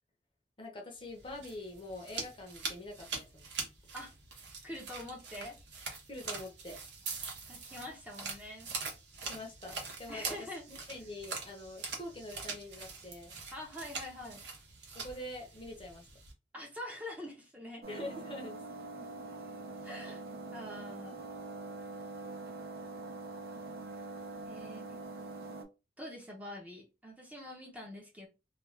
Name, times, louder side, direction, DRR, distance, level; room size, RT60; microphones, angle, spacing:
voice 1, 0.6-3.5 6.1-6.8 9.3-13.3 15.0-16.1 17.9-18.6, left 1 dB, 30° left, 0.7 m, -45 dB
sound 1, 1.1-16.3, right 4 dB, 80° right, 0.8 m, -43 dB
voice 2, 4.6-5.6 7.5-8.7 10.1-10.6 13.5-14.5 16.5-17.8 19.8-20.2 20.5-21.2 24.5-24.9 26.0-28.3, left 1 dB, 10° right, 0.6 m, -45 dB
sound 2, 17.8-25.6, right 3 dB, 55° right, 0.6 m, -44 dB
2.4 x 2.3 x 3.2 m
head